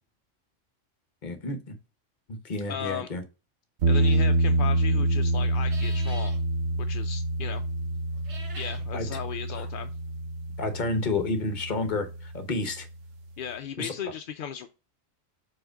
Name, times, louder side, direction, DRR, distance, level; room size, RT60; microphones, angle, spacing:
voice 1, 1.2-1.7 2.3-3.2 8.9-9.1 9.5-9.7 10.6-12.9 13.8-13.9, left 3 dB, 40° left, 1.0 m, -30 dB
voice 2, 2.7-3.1 3.9-6.3 6.8-7.6 8.6-9.9 13.4-14.7, left 8 dB, 60° left, 0.6 m, -36 dB
sound 1, 3.8-12.7, right 2 dB, 80° right, 1.2 m, -27 dB
sound 2, 3.9-4.3 5.5-6.4 8.1-8.8, right 2 dB, 60° right, 1.6 m, -45 dB
4.8 x 4.3 x 5.1 m
omnidirectional pair, 1.3 m